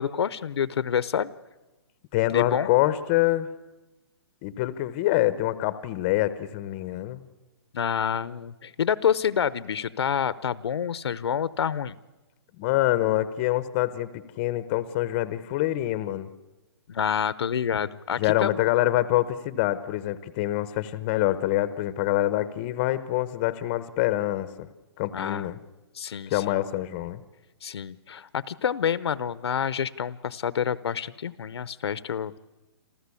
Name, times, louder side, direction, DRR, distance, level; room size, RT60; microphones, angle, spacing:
voice 1, 0.0-1.3 2.3-2.7 7.7-12.0 16.9-18.6 25.1-25.5 25.9-26.6 27.6-32.4, left 8 dB, 70° left, 18 dB, 0.9 m, -28 dB
voice 2, 2.1-3.5 4.4-7.2 12.6-16.3 18.2-24.7 25.0-25.6 26.3-27.2, left 15 dB, 25° left, 15 dB, 0.8 m, -25 dB
28.0 x 14.0 x 8.4 m, 1.1 s
hypercardioid pair, 165°, 14 cm